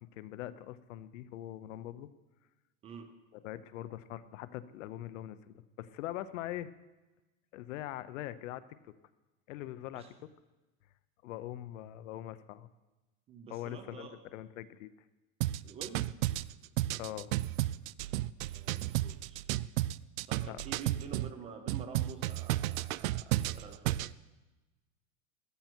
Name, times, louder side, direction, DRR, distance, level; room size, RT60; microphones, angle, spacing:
voice 1, 0.0-2.1 3.4-6.7 7.5-8.9 9.5-10.0 11.2-12.7 13.5-14.9 17.0-17.4 20.5-20.6, left 13 dB, 70° left, 14 dB, 0.8 m, -42 dB
voice 2, 13.3-14.2 15.6-16.1 18.5-19.4 20.3-24.0, right 6 dB, 15° right, 7 dB, 0.5 m, -48 dB
sound 1, 15.4-21.3 21.7-24.1, right 16 dB, 85° right, 0.5 m, -32 dB
14.0 x 11.5 x 4.5 m, 1.1 s
supercardioid pair, 170°, 39 cm